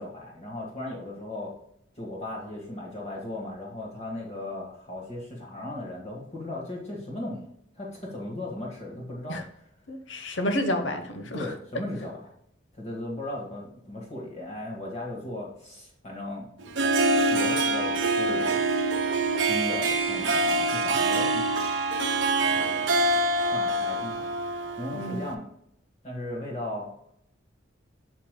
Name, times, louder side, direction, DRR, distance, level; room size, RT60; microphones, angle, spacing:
voice 1, 0.0-1.5 1.9-7.5 7.7-9.4 11.3-12.3 12.7-16.5 17.3-18.7 19.5-21.7 22.4-23.1 23.5-24.3 24.8-25.5 26.0-26.9, left 1 dB, 35° left, -3 dB, 1.7 m, -36 dB
voice 2, 9.9-11.5 24.9-25.2, equal, 75° left, 7 dB, 1.0 m, -30 dB
Harp, 16.6-25.3, right 2 dB, 75° right, 0.9 m, -25 dB
8.3 x 6.6 x 2.2 m, 0.71 s
head